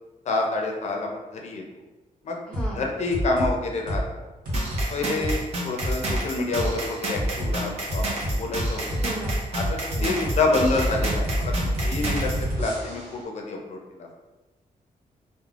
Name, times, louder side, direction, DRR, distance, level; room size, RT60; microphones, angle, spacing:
voice 1, 0.3-1.6 2.2-2.4 2.7-4.0 4.9-9.0 9.5-9.6 10.0-12.3 12.5-14.1, left 3 dB, 55° left, 1 dB, 0.4 m, -27 dB
voice 2, 2.5-2.9 5.0-5.3 9.0-9.4 9.9-10.2, right 1 dB, 5° left, -5 dB, 0.6 m, -36 dB
sound 1, 2.5-2.7 3.1-3.5 3.9-4.1 4.4-4.8 5.2-5.3 5.8-6.2 6.5-6.7 7.1-7.5 7.9-13.2, equal, 85° right, 1.1 m, -27 dB
sound 2, 4.5-12.4, right 2 dB, 50° right, 0.6 m, -32 dB
3.2 x 2.0 x 2.4 m, 1.1 s
wide cardioid pair, 165°, 14 cm